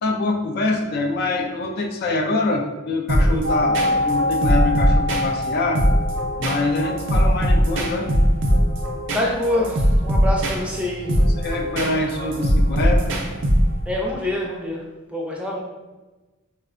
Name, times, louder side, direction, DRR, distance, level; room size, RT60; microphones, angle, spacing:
voice 1, 0.0-5.8 6.4-8.1 11.4-13.2, left 2 dB, 50° left, 3 dB, 0.3 m, -24 dB
sound 1, 3.1-14.0, equal, 60° right, 0.5 m, -21 dB
sound 2, 3.4-13.2 13.4-13.5, left 2 dB, 70° left, 0.8 m, -28 dB
voice 2, 9.1-11.2 13.9-15.6, left 1 dB, 5° right, -3 dB, 0.5 m, -26 dB
4.1 x 2.1 x 2.4 m, 1.2 s
head